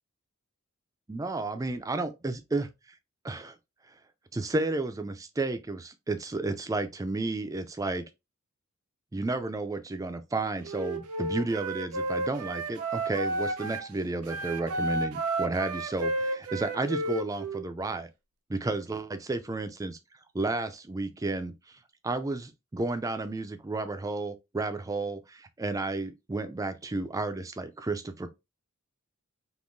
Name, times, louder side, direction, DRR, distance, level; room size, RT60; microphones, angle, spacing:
voice 1, 1.1-3.0 3.2-3.5 3.9-4.0 4.3-8.0 9.1-18.1 18.5-20.0 20.3-28.3, right 2 dB, 15° right, 0.3 m, -32 dB
Wind instrument woodwind instrument, 10.6-13.9 14.2-17.6, right 2 dB, 80° right, 0.5 m, -32 dB
3.6 x 2.6 x 2.5 m
head